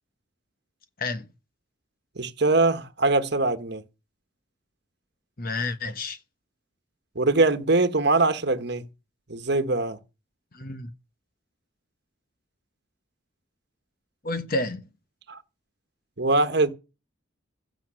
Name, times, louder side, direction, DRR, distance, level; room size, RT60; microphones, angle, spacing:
voice 1, 2.2-3.8 7.1-8.9 9.3-10.0 15.3-15.4 16.2-16.7, right 2 dB, 55° right, 1.3 m, -22 dB
voice 2, 5.4-6.2 10.5-10.9 14.2-14.8, left 2 dB, 45° left, 1.3 m, -30 dB
16.0 x 7.2 x 6.4 m
head